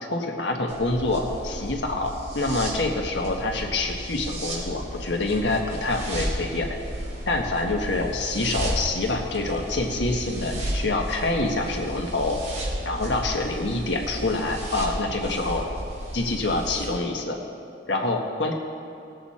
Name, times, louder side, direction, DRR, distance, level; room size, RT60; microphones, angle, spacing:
voice 1, 0.0-6.7 7.3-12.4 12.8-15.7 16.1-17.4 17.9-18.5, left 2 dB, 75° left, 1 dB, 1.4 m, -26 dB
sound 1, 0.7-16.9, equal, 40° right, 3.2 m, -33 dB
19.0 x 8.0 x 4.3 m, 2.5 s
head